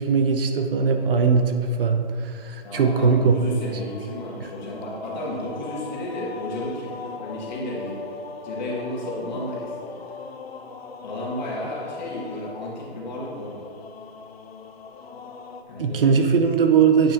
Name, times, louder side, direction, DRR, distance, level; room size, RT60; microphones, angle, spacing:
voice 1, 0.0-3.7 15.8-17.1, right 5 dB, 65° right, 5 dB, 0.7 m, -20 dB
voice 2, 2.6-8.0 8.4-10.0 11.0-13.7 15.7-16.1 16.7-16.8, left 1 dB, 45° left, -4 dB, 1.6 m, -33 dB
sound 1, 3.1-15.6, left 4 dB, 80° left, 0.6 m, -39 dB
8.6 x 5.6 x 2.5 m, 2.4 s
hypercardioid pair, 160°, 30 cm